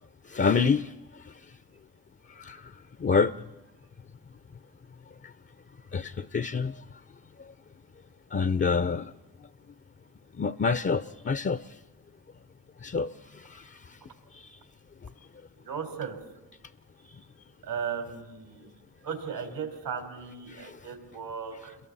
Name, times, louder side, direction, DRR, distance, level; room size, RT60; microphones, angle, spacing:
voice 1, 0.3-0.9 2.4-2.6 3.0-3.3 5.9-6.8 8.3-9.1 10.4-11.6 12.8-13.1 13.5-13.6 14.3-14.5 20.5-20.7, left 5 dB, 30° left, 0.6 m, -26 dB
voice 2, 15.6-16.2 17.6-18.7 19.0-21.8, right 6 dB, 80° right, 3.9 m, -36 dB
29.5 x 22.5 x 4.2 m
supercardioid pair, 50°, 41 cm